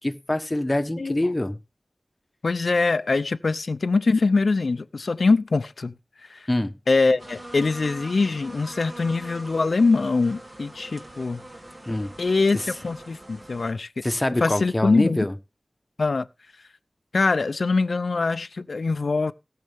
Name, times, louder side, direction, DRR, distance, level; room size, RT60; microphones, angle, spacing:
voice 1, 0.0-1.6 6.5-6.7 11.9-12.1 12.5-12.7 14.0-15.3, left 1 dB, 25° left, 1.2 m, -25 dB
voice 2, 2.4-5.9 6.3-6.5 6.9-11.4 12.2-13.9 14.4-15.2 16.0-16.3 17.1-19.3, left 3 dB, 75° left, 0.6 m, -23 dB
sound 1, 7.2-13.7, right 1 dB, 40° right, 3.5 m, -42 dB
18.5 x 6.7 x 3.5 m
wide cardioid pair, 60°, 0 cm